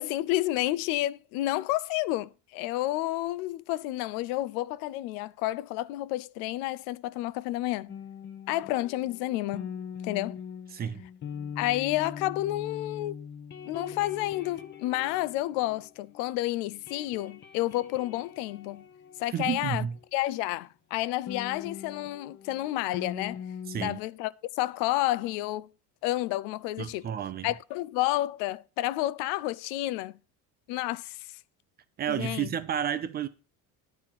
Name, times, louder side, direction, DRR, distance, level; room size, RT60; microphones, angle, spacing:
voice 1, 0.0-7.9 8.5-9.7 10.0-10.4 11.6-13.3 13.7-18.8 19.2-19.9 20.1-23.4 23.8-25.7 26.0-27.1 27.4-30.2 30.7-31.3 32.1-32.5, left 16 dB, 80° left, 0.6 m, -30 dB
sound 1, 7.9-16.4 16.6-20.1 21.3-24.0, left 7 dB, 30° left, 0.9 m, -42 dB
voice 2, 10.7-11.1 19.3-20.0 23.7-24.0 26.8-27.5 32.0-33.3, right 9 dB, 25° right, 0.5 m, -31 dB
10.5 x 4.3 x 7.4 m
cardioid pair, 165°, 37 cm